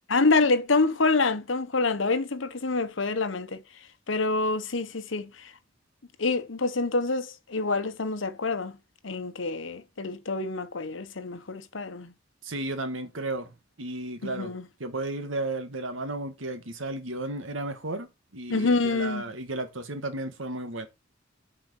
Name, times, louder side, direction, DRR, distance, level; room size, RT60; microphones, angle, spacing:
voice 1, 0.1-3.6 4.1-5.5 6.2-8.7 9.0-12.1 14.2-14.7 18.5-19.2, left 3 dB, 75° left, 1.1 m, -26 dB
voice 2, 12.4-13.5 13.8-14.5 14.8-18.1 18.3-20.9, right 2 dB, 85° right, 1.8 m, -33 dB
7.7 x 5.0 x 6.4 m
head